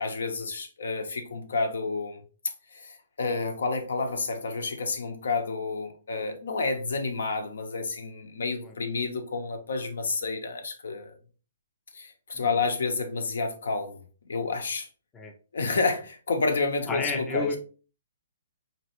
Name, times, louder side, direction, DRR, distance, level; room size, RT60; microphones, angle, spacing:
voice 1, 0.0-2.2 2.7-11.1 11.9-14.9 15.5-17.6, left 3 dB, 85° left, 0.9 m, -30 dB
voice 2, 16.9-17.6, left 4 dB, 10° left, 0.4 m, -30 dB
4.2 x 3.0 x 2.9 m
hypercardioid pair, 165°, 0 cm